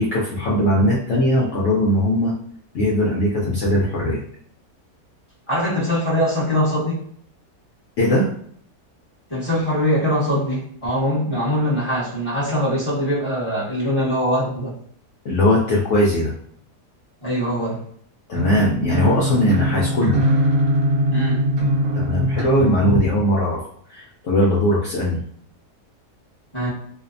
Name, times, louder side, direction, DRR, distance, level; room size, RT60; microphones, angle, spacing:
voice 1, 0.0-2.3 2.7-4.2 8.0-8.3 15.2-16.3 18.3-20.2 21.9-23.6 23.9-25.2, left 1 dB, 70° left, -6 dB, 0.7 m, -19 dB
voice 2, 5.5-7.0 9.3-14.7 17.2-17.8 21.1-21.4 26.5-26.7, equal, 25° left, -9 dB, 0.8 m, -22 dB
sound 1, 18.3-22.9, equal, 65° right, 0.9 m, -21 dB
2.7 x 2.1 x 2.4 m, 0.63 s
omnidirectional pair, 1.7 m